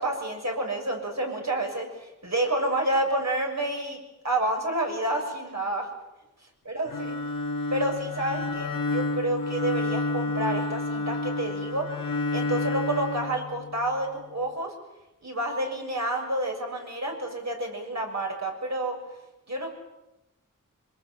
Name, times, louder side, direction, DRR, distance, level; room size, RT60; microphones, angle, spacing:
voice 1, 0.0-4.0 4.2-5.9 6.7-7.2 7.7-11.9 12.3-14.7 15.2-19.0 19.5-19.7, right 1 dB, 55° right, 1 dB, 7.2 m, -29 dB
Bowed string instrument, 6.9-14.0, left 2 dB, 80° left, 1.9 m, -30 dB
26.0 x 25.5 x 7.5 m, 0.97 s
wide cardioid pair, 75°, 32 cm